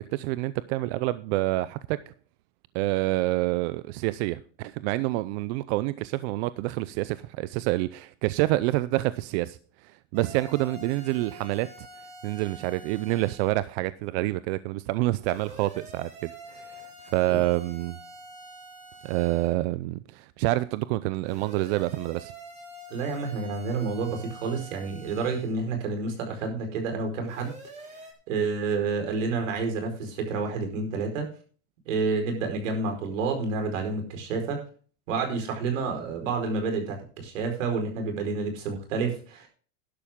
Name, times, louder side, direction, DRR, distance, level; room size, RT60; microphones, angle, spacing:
voice 1, 0.1-2.0 2.7-11.9 12.2-18.0 19.0-22.3, right 18 dB, 60° right, 0.6 m, -27 dB
sound 1, 10.1-13.5 15.2-19.5 21.2-25.6 27.3-28.1, right 1 dB, 20° right, 3.6 m, -46 dB
voice 2, 22.9-27.5 28.3-31.3 31.9-34.6 35.1-39.5, right 4 dB, 90° right, 4.8 m, -29 dB
12.0 x 11.5 x 3.7 m
supercardioid pair, 140°, 37 cm